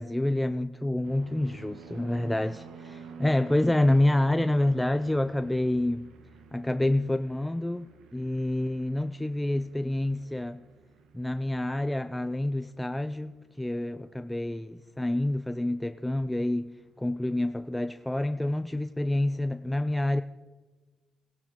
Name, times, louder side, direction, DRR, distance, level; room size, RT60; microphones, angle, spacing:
voice 1, 0.0-6.1 6.5-7.9 8.1-10.6 11.1-16.7 17.0-20.2, left 1 dB, 5° left, 0.4 m, -28 dB
sound 1, 1.0-18.0 18.3-18.8, right 5 dB, 80° right, 1.4 m, -51 dB
16.5 x 11.0 x 4.5 m
cardioid pair, 90°, 0 cm